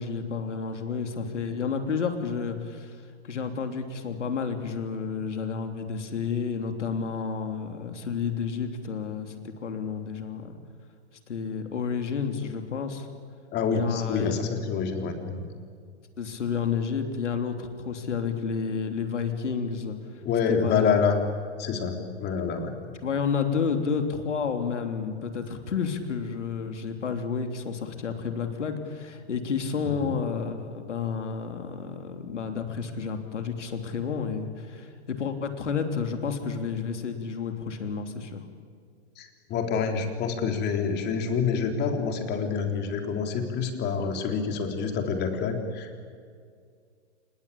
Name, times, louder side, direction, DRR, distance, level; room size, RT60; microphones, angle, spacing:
voice 1, 0.0-3.0 3.2-10.6 11.3-13.1 13.7-14.3 16.2-20.0 20.5-21.0 23.0-38.4, left 6 dB, 85° left, 6 dB, 3.3 m, -30 dB
voice 2, 13.5-15.4 20.2-21.2 21.6-22.9 29.8-30.1 39.2-46.0, left 6 dB, 30° left, 4 dB, 3.8 m, -27 dB
27.5 x 21.0 x 8.7 m, 2.1 s
hypercardioid pair, 130°, 35 cm